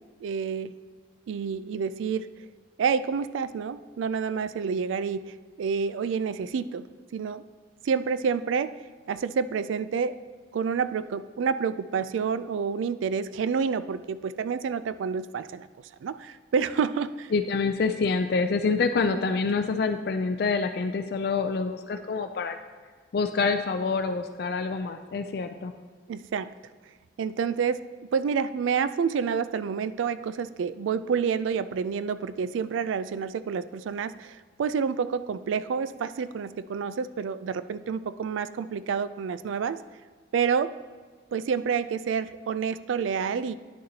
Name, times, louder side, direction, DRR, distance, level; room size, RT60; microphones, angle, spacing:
voice 1, 0.2-0.7 1.3-2.3 2.8-6.9 7.1-7.4 7.8-8.7 9.1-10.2 10.5-15.7 16.0-17.3 19.1-19.2 26.1-26.5 27.2-27.8 28.1-39.8 40.3-40.7 41.3-43.5, right 6 dB, 85° right, 13 dB, 0.3 m, -28 dB
voice 2, 17.3-22.6 23.1-25.7, left 4 dB, 55° left, 7 dB, 0.4 m, -26 dB
10.0 x 6.5 x 2.8 m, 1.6 s
head